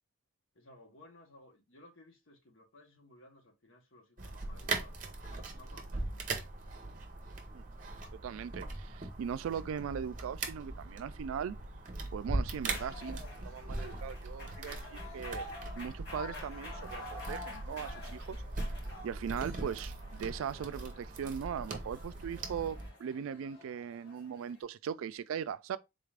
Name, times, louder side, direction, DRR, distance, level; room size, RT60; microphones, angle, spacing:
voice 1, 0.5-6.4 19.6-19.8, left 2 dB, 80° left, 1.1 m, -58 dB
sound 1, 4.2-22.9, right 2 dB, 40° right, 0.6 m, -40 dB
voice 2, 8.1-11.6 12.1-15.5 15.8-18.4 19.0-25.8, right 8 dB, 85° right, 0.3 m, -39 dB
sound 2, 12.6-24.6, left 2 dB, 55° left, 1.5 m, -49 dB
3.8 x 2.4 x 3.3 m
head